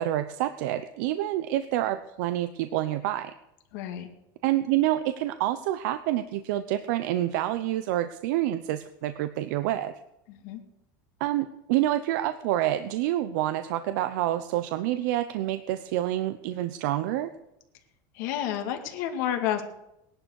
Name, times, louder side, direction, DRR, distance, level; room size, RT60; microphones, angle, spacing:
voice 1, 0.0-3.3 4.4-9.9 11.2-17.3, right 13 dB, 65° right, 10 dB, 0.8 m, -27 dB
voice 2, 3.7-4.1 10.4-10.6 18.1-19.6, left 10 dB, 65° left, 4 dB, 2.2 m, -30 dB
17.5 x 11.5 x 6.5 m, 0.88 s
supercardioid pair, 160°, 10 cm